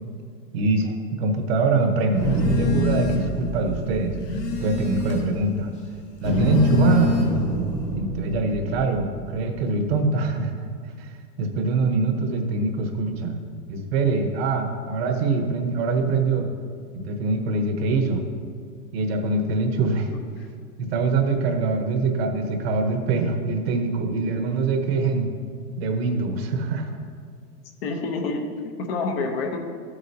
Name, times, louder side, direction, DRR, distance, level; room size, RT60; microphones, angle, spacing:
voice 1, 0.5-4.1 4.6-5.7 6.2-7.2 7.9-10.7 11.0-11.1 11.4-13.4 13.7-16.5 17.0-18.2 18.9-20.1 20.8-25.3 25.8-27.1, right 3 dB, 40° right, 5 dB, 1.0 m, -24 dB
Telephone, 2.2-3.4 3.8-5.5 6.1-7.6, left 7 dB, 90° left, 2.2 m, -28 dB
sound 1, 2.2-5.8 6.2-9.6, right 2 dB, 15° left, 1.2 m, -27 dB
voice 2, 27.8-29.6, left 3 dB, 40° left, 3 dB, 1.0 m, -28 dB
13.0 x 8.1 x 2.8 m, 2.1 s
hypercardioid pair, 155°, 47 cm